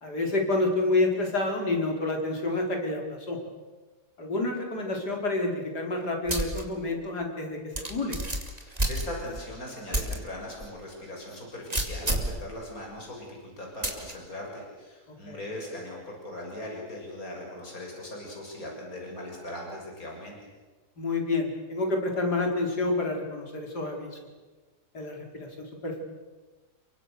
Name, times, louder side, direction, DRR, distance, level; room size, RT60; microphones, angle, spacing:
voice 1, 0.0-3.4 4.2-7.6 7.9-8.2 15.3-15.4 21.0-24.1 24.9-26.0, left 2 dB, 70° left, 2 dB, 4.9 m, -28 dB
sound 1, 6.3-6.6 7.0-7.1 7.7-9.4 9.9-10.2 10.6-10.7 11.7-12.4 13.8-14.1, right 1 dB, 20° right, 3.0 m, -29 dB
voice 2, 8.6-20.4, left 1 dB, 55° left, -1 dB, 7.1 m, -39 dB
30.0 x 24.5 x 6.8 m, 1.3 s
omnidirectional pair, 1.8 m